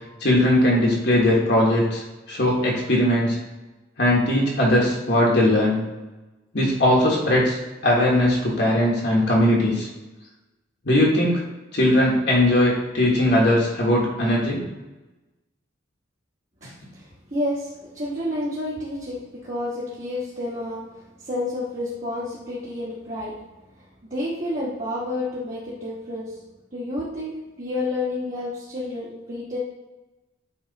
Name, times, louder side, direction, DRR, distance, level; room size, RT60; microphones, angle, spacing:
voice 1, 0.2-2.0 2.3-3.4 4.0-5.8 6.5-9.9 10.8-11.4 11.7-14.6, left 1 dB, 60° left, -3 dB, 1.5 m, -19 dB
voice 2, 16.6-23.3 23.8-26.4 26.7-29.6, left 1 dB, 40° right, -8 dB, 1.4 m, -30 dB
8.6 x 3.2 x 4.1 m, 1.1 s
head